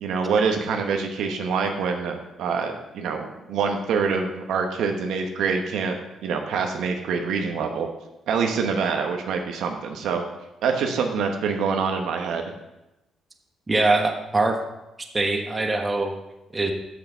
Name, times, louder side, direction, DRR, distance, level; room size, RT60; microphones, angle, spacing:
voice 1, 0.0-7.9 8.3-10.2 10.6-12.4, right 5 dB, 80° right, 4 dB, 1.1 m, -25 dB
voice 2, 13.7-14.6 15.1-16.1 16.5-16.7, right 2 dB, 20° right, 4 dB, 1.2 m, -22 dB
6.8 x 6.6 x 6.7 m, 0.96 s
cardioid pair, 90°, 0 cm